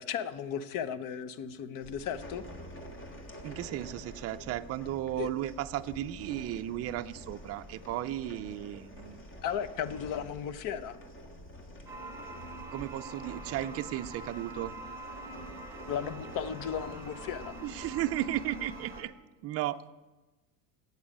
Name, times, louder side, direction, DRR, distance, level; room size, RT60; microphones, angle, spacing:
voice 1, 0.0-2.4 5.2-5.3 9.4-11.0 15.9-17.6, left 8 dB, 45° left, 15 dB, 0.8 m, -35 dB
sound 1, 1.8-19.0, equal, 25° left, 1.8 m, -48 dB
voice 2, 3.4-9.2 12.7-14.7 17.6-19.1 19.4-19.8, right 13 dB, 35° right, 9 dB, 0.5 m, -35 dB
sound 2, 11.9-19.0, right 2 dB, 5° right, 1.2 m, -45 dB
10.0 x 8.1 x 8.5 m, 1.1 s
cardioid pair, 135°, 44 cm